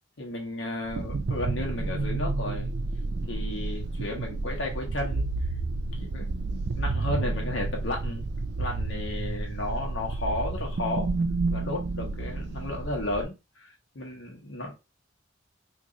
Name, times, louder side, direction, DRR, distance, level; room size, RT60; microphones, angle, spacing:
voice 1, 0.2-2.7 3.3-5.3 5.9-6.3 6.7-8.3 8.6-11.1 11.5-14.8, left 1 dB, 65° left, 0 dB, 1.1 m, -33 dB
sound 1, 0.9-13.3, right 3 dB, 55° right, 0.4 m, -30 dB
3.0 x 2.5 x 3.7 m, 0.26 s
head